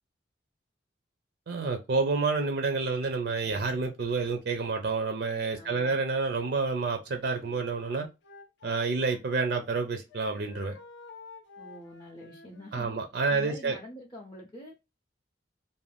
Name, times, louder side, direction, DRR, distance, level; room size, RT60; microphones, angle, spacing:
voice 1, 1.5-8.1 8.6-10.7 12.7-13.8, right 4 dB, 55° right, 0.4 m, -29 dB
voice 2, 5.5-6.0 11.6-13.0 13.3-14.7, left 1 dB, 20° left, 0.5 m, -45 dB
Wind instrument woodwind instrument, 7.2-9.8 10.1-12.9, left 4 dB, 70° left, 0.6 m, -51 dB
2.5 x 2.1 x 3.2 m
head